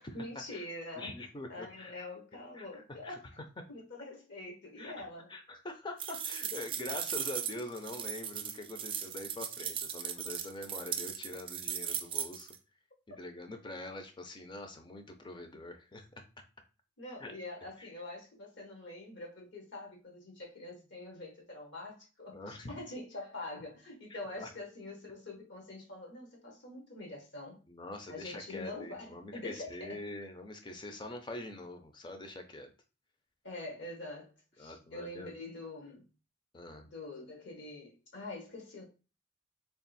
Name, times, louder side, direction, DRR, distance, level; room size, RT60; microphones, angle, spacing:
voice 1, 0.1-1.2 1.5-3.2 3.7-5.3 17.0-27.6 28.1-30.0 33.4-36.1 36.9-38.8, left 2 dB, 65° left, 1.1 m, -45 dB
voice 2, 1.0-1.9 2.5-3.2 3.6-3.7 4.8-12.5 13.1-16.2 17.2-17.3 17.8-17.9 22.3-22.7 24.4-24.5 27.7-32.7 34.6-35.3 36.5-36.8, left 2 dB, 25° left, 0.6 m, -44 dB
sound 1, 6.0-12.6, right 8 dB, 25° right, 0.3 m, -38 dB
3.5 x 2.4 x 4.0 m
head